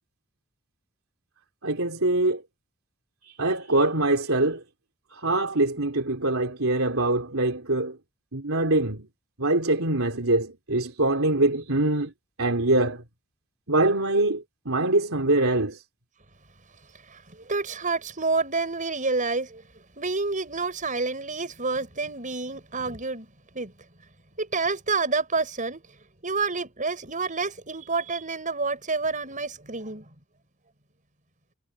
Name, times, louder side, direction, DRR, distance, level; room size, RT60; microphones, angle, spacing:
voice 1, 1.6-2.4 3.4-4.6 5.2-8.0 8.3-9.1 9.4-12.1 12.4-13.0 13.7-15.8, right 2 dB, 65° right, 3.9 m, -23 dB
voice 2, 17.1-19.6 20.0-23.3 23.5-23.7 24.4-25.8 26.2-30.1, right 3 dB, 35° right, 7.6 m, -28 dB
head